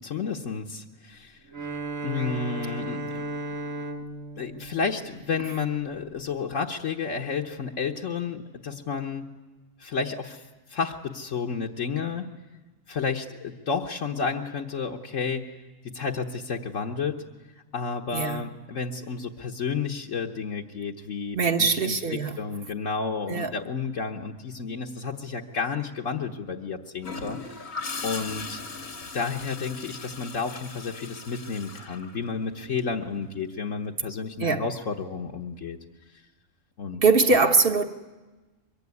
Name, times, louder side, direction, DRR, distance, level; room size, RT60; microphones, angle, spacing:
voice 1, 0.0-1.4 2.0-3.3 3.7-3.9 4.4-9.3 9.8-10.4 10.7-12.2 12.9-15.5 15.8-17.2 17.7-27.8 28.0-28.6 29.1-35.8 36.8-37.0, left 5 dB, 70° left, 1.5 m, -31 dB
Bowed string instrument, 1.5-5.8, right 2 dB, 80° right, 2.6 m, -36 dB
voice 2, 18.1-18.5 21.3-22.4 23.3-23.5 34.4-34.6 37.0-37.8, right 4 dB, 45° right, 1.5 m, -22 dB
Gurgling / Toilet flush, 27.0-32.8 34.8-35.0, left 4 dB, 85° left, 2.5 m, -38 dB
23.5 x 23.0 x 9.6 m
omnidirectional pair, 1.4 m